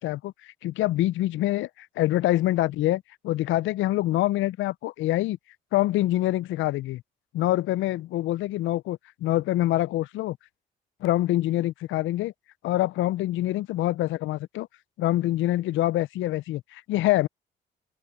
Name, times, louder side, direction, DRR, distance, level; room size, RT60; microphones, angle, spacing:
voice 1, 0.0-5.4 5.7-7.0 7.3-10.4 11.0-12.3 12.6-14.7 15.0-17.3, left 15 dB, 75° left, 0.5 m, -25 dB
open air
supercardioid pair, 55°, 20 cm